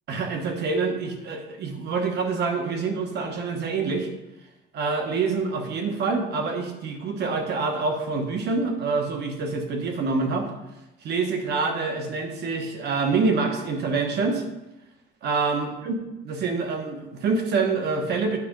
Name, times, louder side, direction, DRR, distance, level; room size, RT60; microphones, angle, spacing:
voice 1, 0.1-4.1 4.7-10.5 11.0-14.4 15.2-16.0 16.2-18.4, right 4 dB, 55° right, 4 dB, 1.3 m, -26 dB
9.6 x 4.2 x 5.3 m, 0.95 s
cardioid pair, 155°, 21 cm